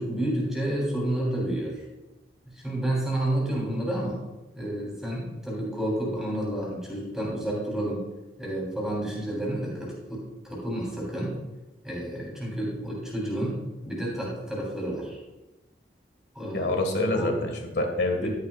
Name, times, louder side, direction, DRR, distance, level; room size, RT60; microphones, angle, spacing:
voice 1, 0.0-1.8 2.5-4.2 4.5-8.1 8.4-11.3 11.8-13.6 13.8-15.2 16.3-16.8 17.1-17.4 18.2-18.3, right 1 dB, 5° right, -5 dB, 3.4 m, -30 dB
voice 2, 16.5-18.3, left 2 dB, 65° left, 4 dB, 1.8 m, -26 dB
12.0 x 11.0 x 2.4 m, 1.1 s
head